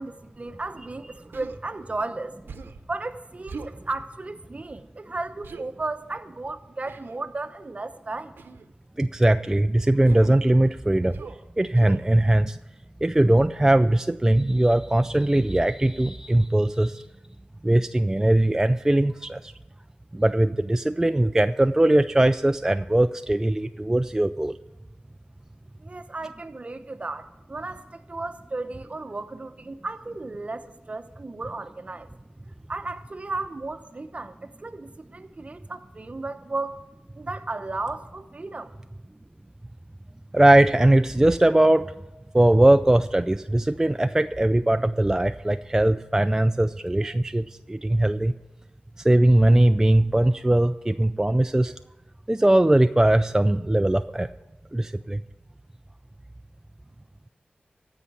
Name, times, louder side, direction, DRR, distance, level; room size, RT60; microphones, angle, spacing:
voice 1, 0.0-2.4 2.9-8.3 25.8-32.1 32.7-36.8 37.1-38.8, right 3 dB, 40° right, 0.8 m, -34 dB
Human voice, 1.3-1.6 2.5-2.9 3.5-3.8 5.4-5.7 6.9-7.2 8.4-8.7 10.0-10.4 11.1-11.4 11.7-12.0, right 5 dB, 85° right, 0.8 m, -40 dB
voice 2, 9.0-11.2 11.6-12.6 13.0-17.0 17.6-19.5 20.1-24.5 40.3-41.9 42.3-48.3 49.0-51.7 52.3-54.3 54.7-55.2, right 1 dB, 15° right, 0.3 m, -20 dB
15.0 x 5.7 x 8.8 m
wide cardioid pair, 65°, 3 cm